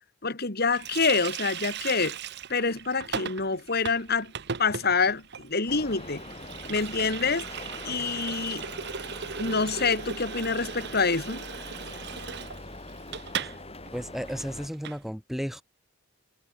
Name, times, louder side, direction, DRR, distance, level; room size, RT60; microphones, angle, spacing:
voice 1, 0.2-2.2 2.5-4.3 4.6-6.2 6.7-7.5 7.8-8.6 9.4-11.4, left 4 dB, 50° left, 2.4 m, -26 dB
Water tap faucet, 0.7-13.6 13.9-14.0 14.3-15.0, right 7 dB, 55° right, 1.1 m, -38 dB
sound 1, 5.7-14.7, left 2 dB, 30° left, 6.7 m, -42 dB
voice 2, 13.9-15.6, equal, ahead, 2.1 m, -33 dB
head